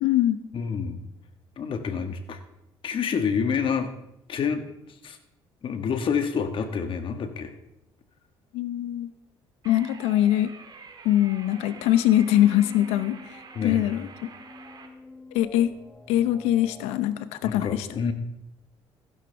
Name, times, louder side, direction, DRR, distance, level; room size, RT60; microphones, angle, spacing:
voice 1, 0.0-0.4 8.5-9.1 9.6-10.5 11.0-14.3 15.3-15.7 16.1-17.9, left 12 dB, 85° left, 14 dB, 0.7 m, -23 dB
voice 2, 0.5-1.0 1.6-2.4 2.8-3.9 4.3-4.6 5.0-5.2 5.6-7.5 13.5-13.8 17.4-18.1, left 6 dB, 55° left, 8 dB, 1.5 m, -27 dB
sound 1, 9.6-14.9, right 5 dB, 40° right, 1.8 m, -47 dB
sound 2, 11.5-17.0, left 3 dB, 15° left, 1.7 m, -47 dB
15.0 x 12.5 x 3.4 m, 0.83 s
supercardioid pair, 80°, 11 cm